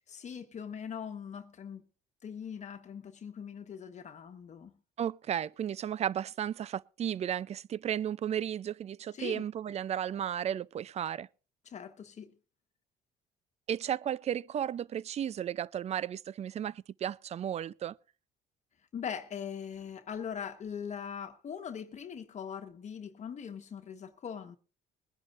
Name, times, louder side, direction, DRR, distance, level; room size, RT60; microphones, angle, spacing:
voice 1, 0.1-1.8 2.2-4.7 9.1-9.4 11.6-12.3 18.9-24.6, left 7 dB, 45° left, 1.3 m, -41 dB
voice 2, 5.0-11.3 13.7-17.9, right 9 dB, 40° right, 0.5 m, -34 dB
21.5 x 10.5 x 2.6 m
cardioid pair, 110°, 17 cm